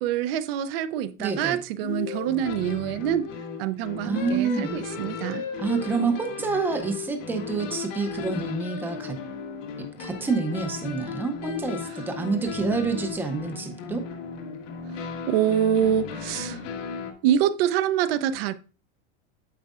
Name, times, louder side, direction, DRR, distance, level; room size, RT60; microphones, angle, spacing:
voice 1, 0.0-3.2 3.6-5.5 15.0-16.6 17.2-18.5, right 10 dB, 50° right, 0.6 m, -25 dB
voice 2, 1.2-1.6 4.0-4.8 5.6-9.2 10.0-14.1, right 4 dB, 5° right, 0.5 m, -28 dB
sound 1, 1.8-2.9, left 8 dB, 45° left, 0.9 m, -36 dB
sound 2, 2.3-17.1, left 5 dB, 90° left, 1.8 m, -36 dB
9.0 x 7.7 x 2.4 m
supercardioid pair, 170°, 37 cm